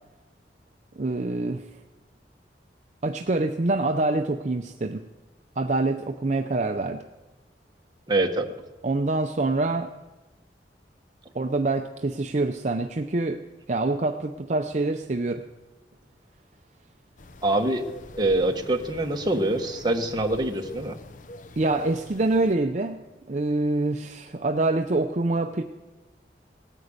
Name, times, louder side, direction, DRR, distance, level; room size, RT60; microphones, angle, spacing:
voice 1, 1.0-1.7 3.0-5.0 5.6-7.0 8.8-9.9 11.3-13.4 13.7-15.4 21.6-23.0 23.3-25.6, right 2 dB, 40° right, 6 dB, 0.6 m, -25 dB
voice 2, 8.1-8.5 17.4-17.8 18.2-21.0, right 2 dB, 25° right, 4 dB, 1.2 m, -24 dB
sound 1, 17.2-22.5, left 1 dB, 45° left, 0.7 m, -42 dB
18.0 x 9.2 x 8.1 m, 1.2 s
head